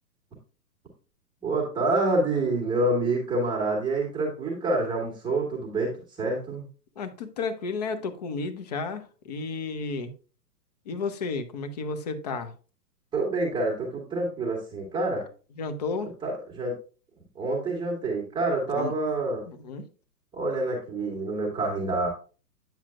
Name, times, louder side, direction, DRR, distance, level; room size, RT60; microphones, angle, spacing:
voice 1, 1.4-6.6 13.1-15.2 16.2-16.8 17.3-19.4 20.3-22.1, right 2 dB, 10° right, 1.4 m, -27 dB
voice 2, 7.0-10.1 10.9-12.5 15.6-16.1 18.7-18.9 19.5-19.9, left 4 dB, 25° left, 0.7 m, -32 dB
8.9 x 7.2 x 2.4 m
figure-of-eight pair, 120°, 49 cm